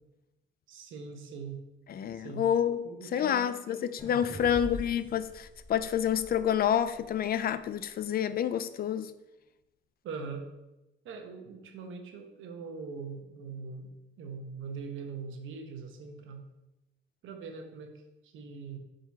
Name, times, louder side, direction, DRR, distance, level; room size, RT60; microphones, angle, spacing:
voice 1, 0.7-1.6 2.1-2.5 2.8-3.6 3.9-4.0 4.3-4.5 10.0-10.5 11.0-16.4 17.2-18.8, right 5 dB, 80° right, 0.9 m, -42 dB
voice 2, 1.9-2.8 3.1-9.1, left 9 dB, 50° left, 0.4 m, -28 dB
sound 1, 4.0-7.2, equal, 25° left, 1.5 m, -44 dB
5.8 x 3.9 x 4.2 m
cardioid pair, 90°, 20 cm